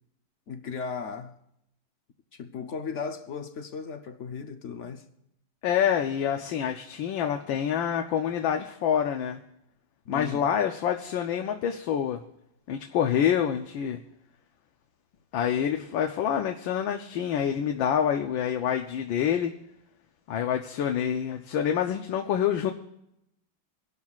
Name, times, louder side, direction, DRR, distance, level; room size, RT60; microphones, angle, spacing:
voice 1, 0.5-1.3 2.3-5.0 10.1-10.5, left 5 dB, 55° left, 0.8 m, -36 dB
voice 2, 5.6-9.4 10.1-12.2 12.7-14.0 15.3-19.5 20.3-22.7, left 9 dB, 75° left, 1.5 m, -27 dB
24.5 x 12.0 x 2.4 m
omnidirectional pair, 2.2 m